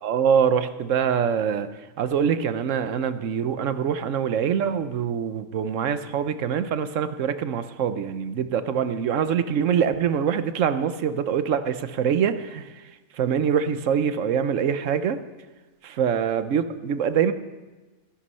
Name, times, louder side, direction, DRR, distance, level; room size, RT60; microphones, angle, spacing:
voice 1, 0.0-15.2 15.8-17.3, right 7 dB, 60° right, 11 dB, 1.1 m, -24 dB
16.0 x 11.5 x 5.6 m, 1.2 s
omnidirectional pair, 1.6 m